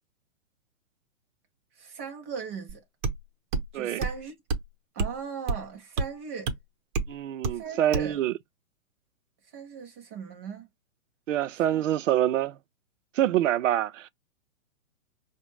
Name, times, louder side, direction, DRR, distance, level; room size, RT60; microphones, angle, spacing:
voice 1, 1.8-2.8 3.7-4.3 4.9-6.5 7.5-8.2 9.5-10.7 11.7-11.8, right 6 dB, 10° right, 0.4 m, -38 dB
sound 1, 2.7-2.8 3.0-3.2 3.5-3.7 4.0-4.2 4.5-4.7 5.0-5.2 5.5-5.6 6.0-6.1 6.5-6.6 6.9-7.1 7.4-7.6 7.9-8.1, right 4 dB, 35° right, 0.8 m, -28 dB
voice 2, 7.1-8.3 11.3-12.6 13.1-14.1, right 12 dB, 65° right, 0.5 m, -26 dB
4.9 x 2.2 x 3.1 m
hypercardioid pair, 140°, 42 cm